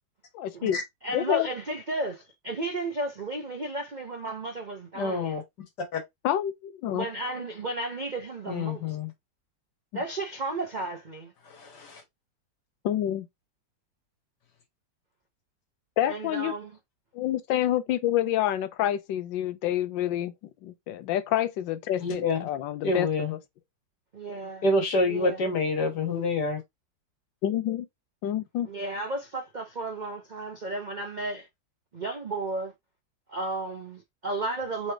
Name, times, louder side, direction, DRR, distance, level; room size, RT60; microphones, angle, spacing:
voice 1, 0.3-0.8 1.1-1.5 6.2-7.0 12.8-13.3 16.0-16.5 17.1-20.3 20.6-23.1 27.4-27.9 28.2-28.7, left 12 dB, 85° left, 1.3 m, -27 dB
voice 2, 1.0-5.4 6.9-8.8 9.9-11.3 16.1-16.8 24.1-24.6 25.1-25.4 28.6-31.5 31.9-32.7 33.3-34.9, right 2 dB, 70° right, 0.4 m, -33 dB
voice 3, 5.0-5.4 5.9-6.0 8.5-9.1 11.5-12.0 22.0-22.5 22.8-23.3 24.6-26.6, left 2 dB, 65° left, 1.8 m, -27 dB
4.0 x 3.2 x 3.3 m
omnidirectional pair, 2.0 m